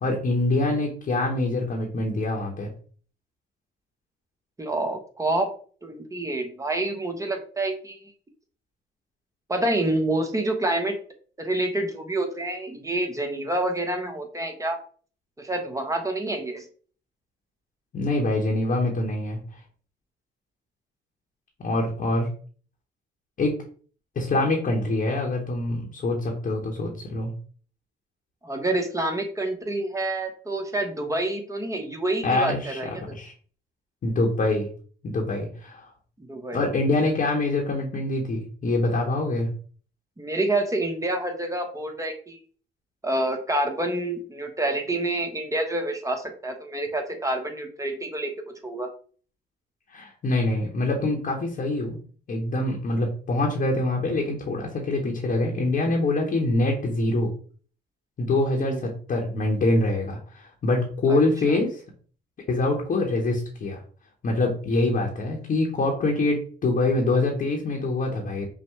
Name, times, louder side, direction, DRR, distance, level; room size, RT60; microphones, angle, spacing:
voice 1, 0.0-2.7 17.9-19.4 21.6-22.3 23.4-23.6 24.1-27.3 32.2-32.8 33.1-33.3 34.0-34.7 35.0-35.9 36.5-39.5 49.9-52.0 52.3-57.3 58.2-61.8 62.5-63.8 64.2-68.5, left 2 dB, 45° left, -1 dB, 1.0 m, -25 dB
voice 2, 4.6-5.5 5.8-8.1 9.5-10.9 11.4-14.8 15.4-16.6 28.4-32.9 36.3-36.6 40.2-42.4 43.0-48.3 48.6-48.9 58.5-58.8 61.1-61.2 61.5-61.6, right 1 dB, 15° right, 4 dB, 0.9 m, -27 dB
5.7 x 2.2 x 3.2 m, 0.43 s
cardioid pair, 90°, 20 cm